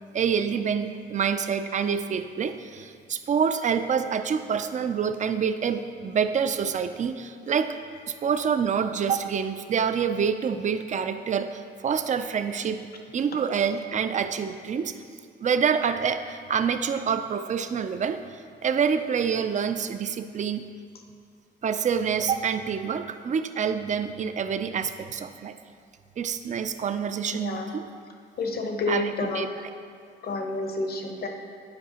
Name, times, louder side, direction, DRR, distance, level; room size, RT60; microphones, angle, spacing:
voice 1, 0.1-7.8 8.1-12.8 13.1-14.9 15.4-20.7 21.6-25.6 26.2-27.9 28.9-29.7, right 7 dB, 40° right, 10 dB, 0.4 m, -27 dB
voice 2, 27.4-27.7 28.4-29.4 30.2-31.3, left 3 dB, 50° left, 3 dB, 0.9 m, -29 dB
10.5 x 4.8 x 2.9 m, 2.2 s
cardioid pair, 90°, 20 cm